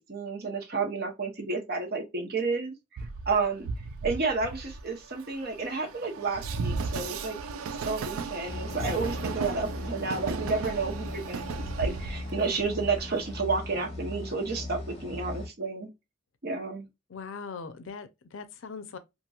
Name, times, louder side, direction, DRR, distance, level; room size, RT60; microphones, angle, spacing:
voice 1, 0.0-3.7 4.0-7.4 7.8-15.9 16.4-16.9, right 4 dB, 50° right, 0.8 m, -31 dB
Train, 3.0-13.4, right 4 dB, 85° right, 0.4 m, -36 dB
sound 1, 8.5-15.5, left 1 dB, 30° left, 0.7 m, -38 dB
voice 2, 17.1-19.0, left 5 dB, 70° left, 0.5 m, -40 dB
2.9 x 2.5 x 2.3 m
head